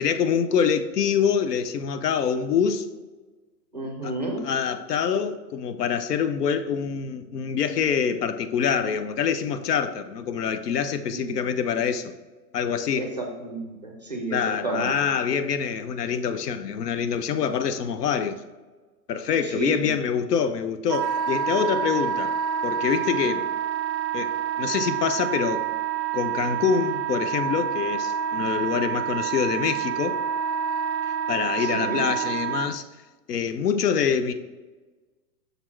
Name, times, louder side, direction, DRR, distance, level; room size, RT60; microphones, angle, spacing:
voice 1, 0.0-2.9 4.0-4.1 4.4-12.1 12.5-13.0 14.3-18.4 19.1-22.3 22.6-23.5 24.1-25.6 26.1-30.2 31.3-32.8 33.3-34.3, left 7 dB, 70° left, 11 dB, 0.7 m, -25 dB
voice 2, 3.7-4.5 11.1-11.4 13.0-15.0 19.4-19.9 31.6-32.0, right 2 dB, 25° right, 1 dB, 0.5 m, -31 dB
Wind instrument woodwind instrument, 20.9-32.7, right 8 dB, 90° right, 0.6 m, -28 dB
6.6 x 4.2 x 4.4 m, 1.3 s
hypercardioid pair, 170°, 50 cm